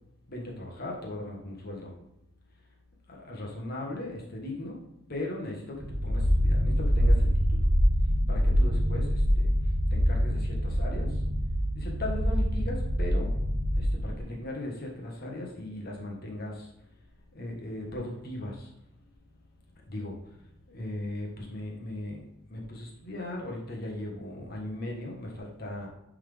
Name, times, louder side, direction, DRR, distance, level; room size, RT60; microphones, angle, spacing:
voice 1, 0.3-1.9 3.1-4.8 5.1-7.7 8.3-9.5 9.9-11.2 11.7-13.3 13.8-16.7 17.3-18.7 19.7-20.3 20.7-22.2 22.5-25.9, left 1 dB, 45° left, -1 dB, 1.5 m, -38 dB
sound 1, 5.8-14.2, equal, 80° right, 1.6 m, -25 dB
9.8 x 3.8 x 3.5 m, 0.85 s
head